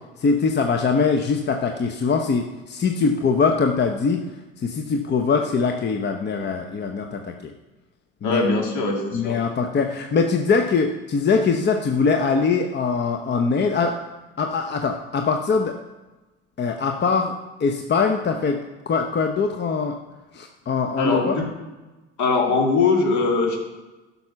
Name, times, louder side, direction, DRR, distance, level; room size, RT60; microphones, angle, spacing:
voice 1, 0.2-4.2 4.6-7.5 8.2-8.4 9.1-14.0 14.4-15.7 16.6-17.3 17.6-18.6 18.9-19.9 20.3-21.4, left 5 dB, 30° left, 5 dB, 0.8 m, -22 dB
voice 2, 8.2-9.4 21.0-21.5 22.2-23.6, left 3 dB, 55° left, 1 dB, 2.6 m, -21 dB
11.5 x 5.6 x 5.8 m, 1.1 s
hypercardioid pair, 65°, 34 cm